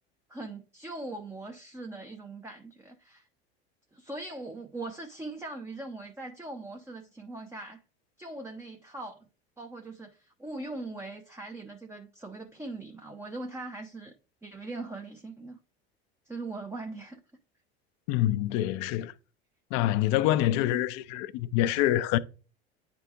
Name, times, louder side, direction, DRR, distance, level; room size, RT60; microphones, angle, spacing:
voice 1, 0.3-3.3 3.9-7.8 8.2-9.2 9.6-14.1 14.4-15.6 16.3-17.2, right 2 dB, 10° right, 0.8 m, -40 dB
voice 2, 18.1-19.1 19.7-22.2, left 14 dB, 60° left, 0.6 m, -26 dB
9.5 x 3.5 x 3.1 m
hypercardioid pair, 75°, 32 cm